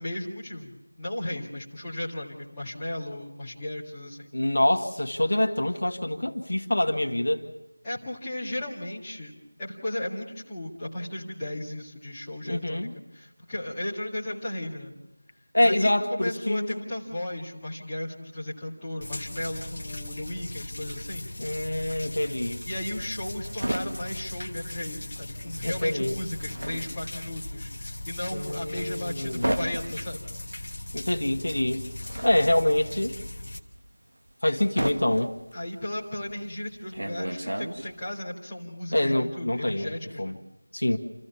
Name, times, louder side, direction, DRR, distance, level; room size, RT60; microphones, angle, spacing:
voice 1, 0.0-4.3 7.8-12.9 13.1-14.9 15.6-21.3 22.7-30.3 35.5-40.4, left 1 dB, 5° left, -12 dB, 2.1 m, -35 dB
voice 2, 4.3-7.4 12.5-12.9 15.5-16.8 21.4-22.6 25.6-26.2 28.3-29.5 30.9-31.8 32.2-33.2 34.4-35.3 38.9-39.9 40.2-40.3 40.7-41.0, left 1 dB, 65° left, 3 dB, 1.7 m, -25 dB
sound 1, 19.0-33.6, left 1 dB, 45° left, 1.3 m, -39 dB
sound 2, 22.8-25.3 25.6-38.2, right 1 dB, 65° right, 1.8 m, -34 dB
28.5 x 14.5 x 7.0 m, 0.97 s
figure-of-eight pair, 175°, 0 cm